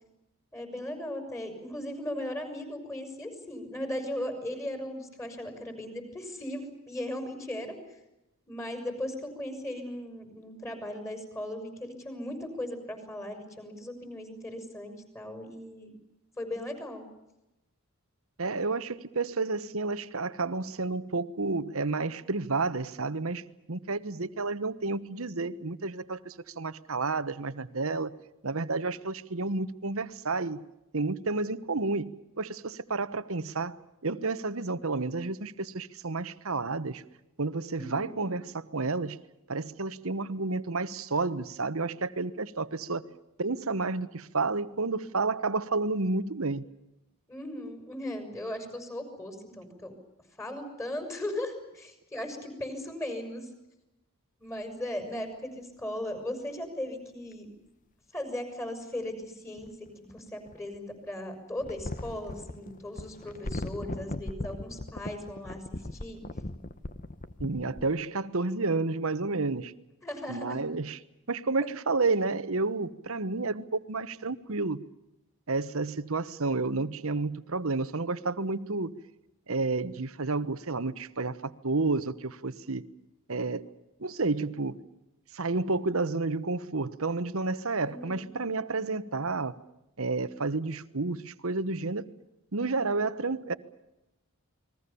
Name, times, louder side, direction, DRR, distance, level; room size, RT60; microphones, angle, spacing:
voice 1, 0.5-7.8 8.5-15.9 16.4-17.0 37.8-38.3 47.3-49.9 50.4-53.5 54.4-57.5 58.1-66.2 70.0-70.7 71.6-71.7 87.8-88.3, left 1 dB, 15° left, 6.5 m, -37 dB
voice 2, 18.4-23.4 23.7-28.1 28.4-30.6 30.9-32.1 32.4-33.8 34.0-37.0 37.4-39.2 39.5-43.0 43.4-46.6 67.4-69.7 70.3-71.0 71.3-74.8 75.5-78.9 79.5-82.9 83.3-83.7 84.0-84.8 85.3-89.6 90.0-92.1 92.5-93.5, right 3 dB, 70° right, 1.2 m, -30 dB
sound 1, 57.3-57.4 59.6-60.8 61.6-67.9, left 1 dB, 35° left, 1.1 m, -39 dB
30.0 x 22.0 x 7.0 m
head